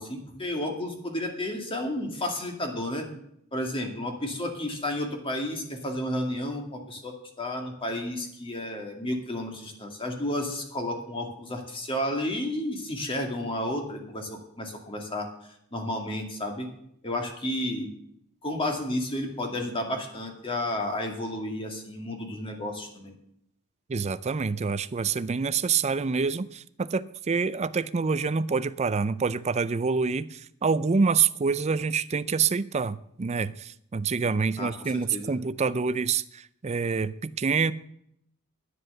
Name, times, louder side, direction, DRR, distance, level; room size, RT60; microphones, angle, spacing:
voice 1, 0.0-3.1 3.5-15.3 15.7-16.7 17.0-17.9 18.4-23.1 34.6-35.3, left 1 dB, 25° left, 2.1 m, -32 dB
voice 2, 23.9-37.7, right 5 dB, 30° right, 0.4 m, -27 dB
10.5 x 9.8 x 6.6 m
head